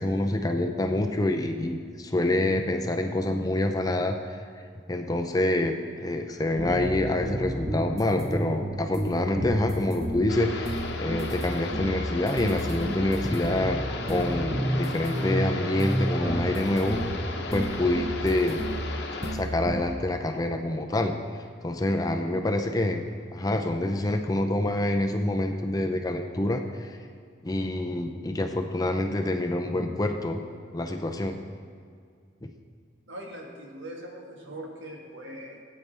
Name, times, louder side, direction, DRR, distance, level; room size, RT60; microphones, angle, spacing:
voice 1, 0.0-4.4 4.9-17.0 17.5-18.6 19.2-21.2 21.6-23.0 23.3-27.0 27.4-30.4 30.7-31.4, left 1 dB, 20° left, 4 dB, 0.5 m, -27 dB
sound 1, 6.6-11.5 11.7-18.9 19.2-19.8, equal, 15° right, 0.8 m, -31 dB
sound 2, 10.3-19.4, left 2 dB, 60° left, 1.0 m, -36 dB
voice 2, 33.1-35.6, right 1 dB, 75° right, 0 dB, 1.7 m, -41 dB
16.5 x 8.7 x 3.4 m, 2.2 s
head